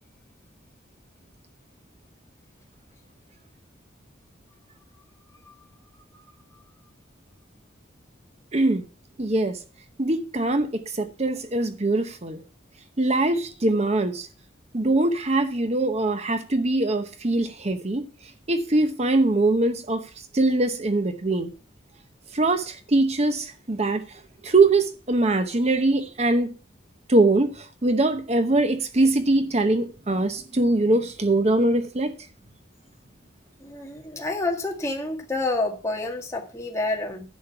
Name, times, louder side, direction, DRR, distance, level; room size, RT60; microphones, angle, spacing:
voice 1, 8.5-8.8 9.2-9.6 10.0-10.7 11.0-12.4 13.0-14.3 14.7-18.0 18.5-20.0 20.3-21.5 22.3-24.0 24.4-26.5 27.1-27.5 27.8-32.1, right 2 dB, 35° right, 0.9 m, -22 dB
voice 2, 33.6-37.2, left 2 dB, 15° left, 1.7 m, -28 dB
10.5 x 6.5 x 5.7 m
head